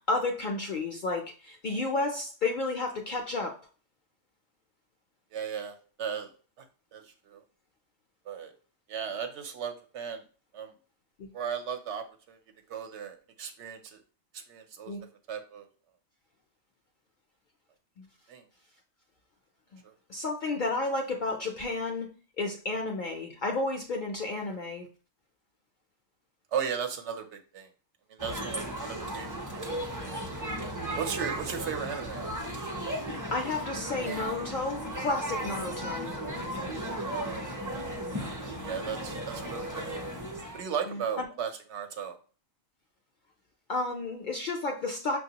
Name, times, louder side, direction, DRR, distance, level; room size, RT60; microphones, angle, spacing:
voice 1, 0.1-3.6 11.2-11.3 14.9-15.0 18.0-18.1 19.7-19.8 20.1-24.9 33.3-36.1 40.9-41.3 43.7-45.2, left 3 dB, 60° left, 1 dB, 0.5 m, -32 dB
voice 2, 5.3-6.3 6.6-6.7 6.9-7.4 8.3-8.5 8.9-10.2 10.5-10.7 11.3-12.4 12.7-14.0 14.3-14.9 15.3-15.7 18.3-18.4 19.8-19.9 26.5-27.7 28.1-29.6 30.0-30.2 31.0-32.2 37.7-37.8 38.2-40.0 40.5-42.2, right 7 dB, 70° right, 6 dB, 0.8 m, -36 dB
sound 1, 28.2-40.6, right 1 dB, 25° right, 0.5 m, -35 dB
5.8 x 2.3 x 2.8 m, 0.38 s
omnidirectional pair, 1.3 m